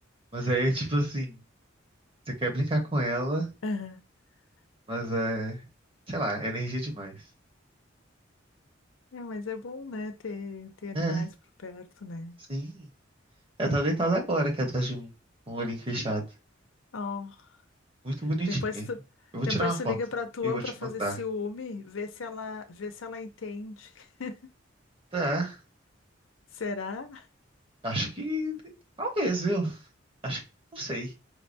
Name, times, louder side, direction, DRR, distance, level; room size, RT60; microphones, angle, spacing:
voice 1, 0.3-1.4 2.3-3.5 4.9-5.6 6.1-7.1 10.9-11.2 12.5-12.9 13.6-15.1 15.5-16.2 18.0-18.9 19.3-19.9 20.4-20.6 21.0-21.2 25.1-25.6 27.8-28.6 29.0-29.8 30.2-30.4 30.7-31.1, right 1 dB, 30° right, 1.0 m, -29 dB
voice 2, 3.6-4.0 9.1-11.3 11.6-12.4 16.9-17.5 18.5-19.0 19.5-24.5 26.5-27.3, left 4 dB, 80° left, 0.6 m, -35 dB
4.7 x 2.2 x 2.5 m
head